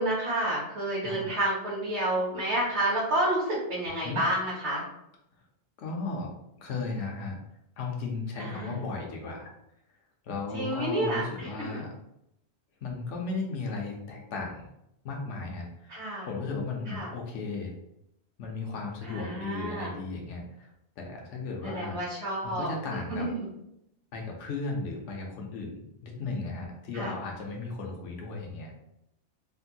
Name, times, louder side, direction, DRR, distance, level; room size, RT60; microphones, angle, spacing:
voice 1, 0.0-4.8 8.4-8.8 10.5-11.8 15.9-16.3 16.9-17.1 19.0-19.9 21.6-22.7 23.1-23.5 26.9-27.2, right 1 dB, 70° right, -7 dB, 1.2 m, -30 dB
voice 2, 5.8-6.3 6.6-7.4 7.8-9.5 10.2-11.9 12.8-14.7 15.0-15.9 16.3-17.7 18.4-20.7 21.0-22.0 22.4-23.3 24.1-28.7, left 3 dB, 90° left, 0 dB, 1.0 m, -35 dB
3.4 x 2.2 x 2.7 m, 0.80 s
omnidirectional pair, 1.2 m